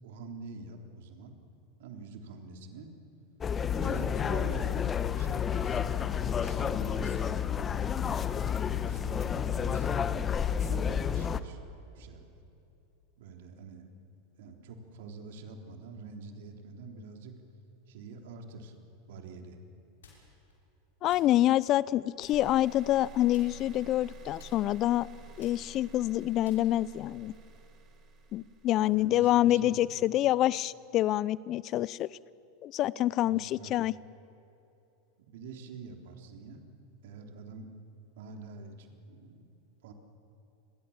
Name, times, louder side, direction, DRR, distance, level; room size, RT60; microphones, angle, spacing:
voice 1, 0.0-1.3 1.8-2.9 3.8-6.0 6.4-10.1 10.6-11.6 11.9-12.2 13.2-13.9 14.4-17.4 17.9-18.7 19.1-19.6 28.9-29.7 33.2-33.7 35.2-36.6 37.0-37.7 38.2-39.5 39.8-39.9, right 4 dB, 70° right, 3 dB, 3.6 m, -46 dB
sound 1, 3.4-11.4, left 8 dB, 25° left, 1.1 m, -30 dB
sound 2, 20.0-20.5 21.1-21.9 22.2-22.7 23.3-24.1 24.4-27.1, left 4 dB, 85° left, 6.2 m, -57 dB
voice 2, 21.0-25.1 25.4-27.3 28.3-32.1 32.6-33.9, left 14 dB, 45° left, 21 dB, 0.5 m, -27 dB
sound 3, 22.3-29.5, right 3 dB, 40° right, 4.7 m, -50 dB
29.0 x 22.5 x 7.3 m, 2.8 s
hypercardioid pair, 100°, 0 cm